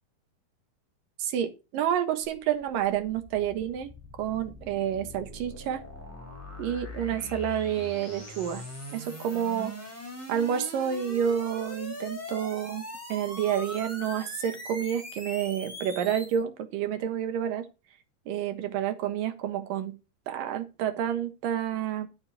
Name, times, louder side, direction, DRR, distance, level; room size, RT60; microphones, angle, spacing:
voice 1, 1.2-3.9 4.2-5.8 6.6-8.7 8.9-9.7 10.3-17.7 18.3-20.0 20.3-22.1, right 9 dB, 80° right, 3.0 m, -29 dB
sound 1, 2.2-16.4, left 1 dB, 5° left, 3.8 m, -41 dB
12.0 x 6.7 x 4.3 m
omnidirectional pair, 3.9 m